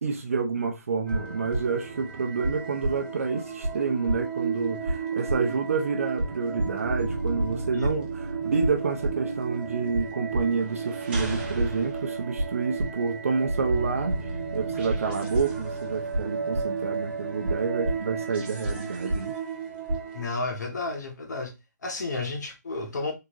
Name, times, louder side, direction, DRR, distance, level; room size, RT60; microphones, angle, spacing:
voice 1, 0.0-14.2 14.5-19.3, right 5 dB, 50° right, 0.5 m, -28 dB
sound 1, 1.1-20.2, right 3 dB, 35° right, 0.9 m, -31 dB
voice 2, 20.1-21.5 21.8-23.1, left 3 dB, 70° left, 1.1 m, -32 dB
3.7 x 2.8 x 2.4 m
hypercardioid pair, 170°, 10 cm